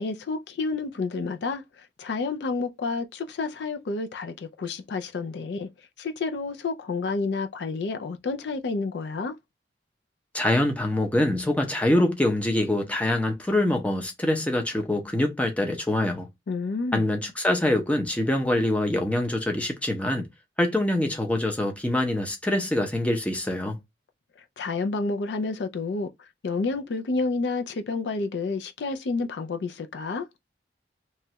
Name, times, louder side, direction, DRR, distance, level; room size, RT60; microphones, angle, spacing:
voice 1, 0.0-1.6 2.0-5.7 6.0-9.3 16.5-17.0 24.6-26.1 26.4-30.3, left 3 dB, 75° left, 0.4 m, -29 dB
voice 2, 10.3-16.3 16.9-20.3 20.6-23.8, left 1 dB, 10° left, 0.5 m, -24 dB
3.0 x 2.2 x 2.8 m
head